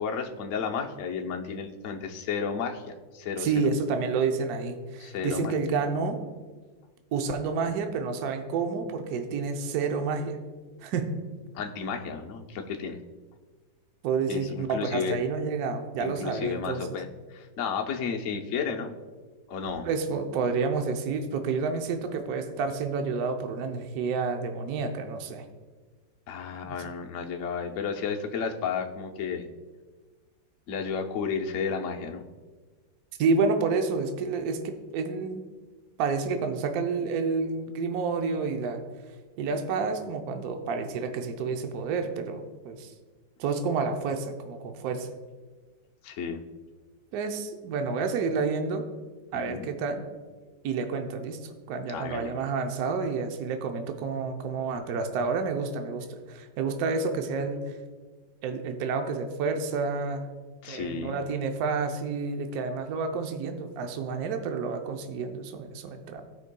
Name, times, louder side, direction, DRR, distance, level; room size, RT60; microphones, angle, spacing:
voice 1, 0.0-3.5 5.0-5.5 11.5-13.0 14.3-15.1 16.0-18.9 19.5-19.9 26.3-29.5 30.7-32.3 46.0-46.4 49.3-49.7 51.9-52.3 60.6-61.2, left 6 dB, 60° left, 2 dB, 0.8 m, -32 dB
voice 2, 3.4-6.2 7.1-10.4 10.8-11.1 14.0-16.9 19.8-25.4 26.6-26.8 33.2-35.4 36.0-38.8 39.4-42.9 43.4-45.1 47.1-48.9 49.3-50.0 50.6-51.4 51.7-57.6 58.4-60.3 60.7-66.2, right 4 dB, 65° right, 5 dB, 1.1 m, -29 dB
15.5 x 5.3 x 2.2 m, 1.4 s
omnidirectional pair, 2.0 m